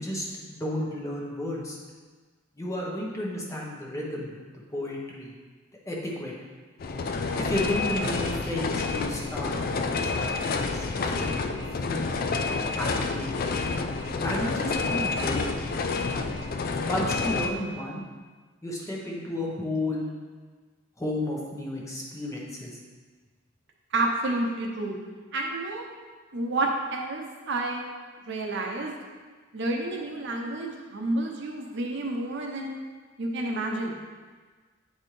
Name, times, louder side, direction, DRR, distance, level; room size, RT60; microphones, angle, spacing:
voice 1, 0.0-1.8 2.6-4.3 4.7-5.3 5.9-6.3 7.4-9.6 9.8-12.0 12.7-13.6 14.2-15.5 16.9-18.0 18.6-20.0 21.0-22.7, left 1 dB, 15° left, -3 dB, 1.0 m, -32 dB
sound 1, 6.8-17.5, left 4 dB, 45° left, 0.4 m, -29 dB
voice 2, 23.9-24.9 25.3-25.9 26.3-27.9 28.3-28.9 29.5-32.8 33.2-34.0, right 2 dB, 65° right, 0 dB, 0.8 m, -30 dB
8.8 x 4.2 x 3.3 m, 1.4 s
head